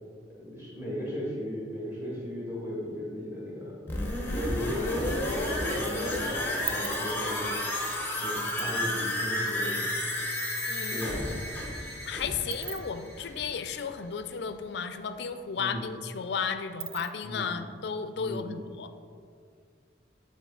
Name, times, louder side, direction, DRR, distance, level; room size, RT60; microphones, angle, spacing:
voice 1, 0.4-3.7 4.3-7.6 8.2-9.9 10.9-11.4 15.6-15.8 17.2-17.6 18.2-18.5, equal, 10° right, -6 dB, 1.8 m, -37 dB
sound 1, 3.9-13.6 13.9-14.0, left 1 dB, 10° left, 0.8 m, -31 dB
sound 2, 5.8-5.9 6.1-10.3 10.6-10.7 10.9-14.8 15.1-15.2 15.5-17.4, right 13 dB, 50° right, 0.3 m, -42 dB
voice 2, 10.7-11.1 12.1-18.9, left 6 dB, 60° left, 10 dB, 0.4 m, -34 dB
9.5 x 4.0 x 3.8 m, 2.2 s
head